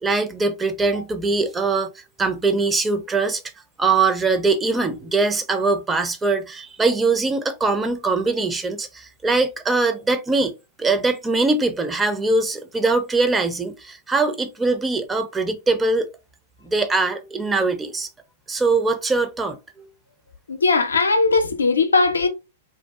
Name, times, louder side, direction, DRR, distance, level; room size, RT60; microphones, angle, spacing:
voice 1, 0.0-1.9 2.2-3.4 3.8-10.5 10.8-16.1 16.6-18.1 18.5-19.6, right 3 dB, 15° right, 0.4 m, -22 dB
voice 2, 20.5-22.3, left 3 dB, 80° left, 0.4 m, -18 dB
2.4 x 2.2 x 2.2 m
figure-of-eight pair, 100°, 0 cm